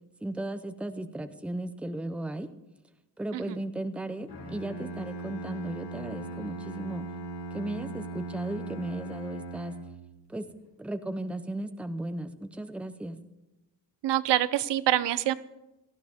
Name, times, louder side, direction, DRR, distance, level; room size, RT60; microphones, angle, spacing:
voice 1, 0.2-2.5 3.2-7.1 7.5-9.7 10.3-10.5 10.8-13.2, right 1 dB, 5° right, 10 dB, 0.6 m, -35 dB
Bowed string instrument, 4.3-10.2, right 3 dB, 70° left, 6.0 m, -39 dB
voice 2, 14.0-15.3, right 13 dB, 80° right, 16 dB, 0.7 m, -25 dB
18.0 x 14.5 x 3.6 m, 0.97 s
wide cardioid pair, 175°, 41 cm